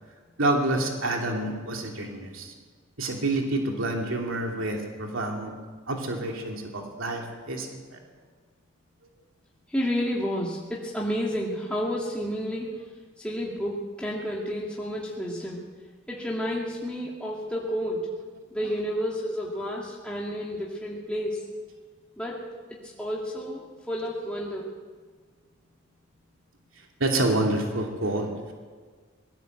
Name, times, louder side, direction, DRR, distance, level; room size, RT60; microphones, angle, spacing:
voice 1, 0.4-2.5 3.0-5.5 5.9-8.0 27.0-28.5, right 2 dB, 85° right, 1 dB, 2.9 m, -28 dB
voice 2, 9.7-12.7 13.2-15.6 16.1-18.1 18.5-21.4 22.2-22.4 22.7-24.7, equal, 5° left, -5 dB, 2.4 m, -30 dB
20.5 x 16.5 x 8.0 m, 1.5 s
head